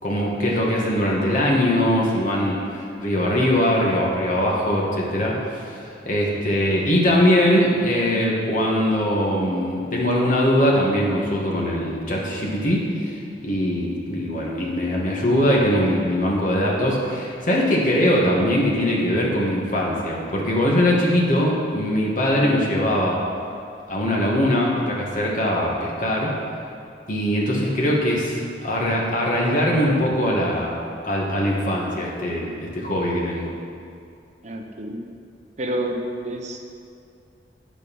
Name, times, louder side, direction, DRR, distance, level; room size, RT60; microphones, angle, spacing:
voice 1, 0.0-5.8 6.1-23.2 23.9-26.3 27.1-30.8 31.0-33.5, equal, 45° left, -3 dB, 2.0 m, -21 dB
voice 2, 34.4-35.0 35.6-36.6, right 1 dB, 40° right, 3 dB, 0.9 m, -29 dB
9.6 x 8.9 x 5.5 m, 2.5 s
head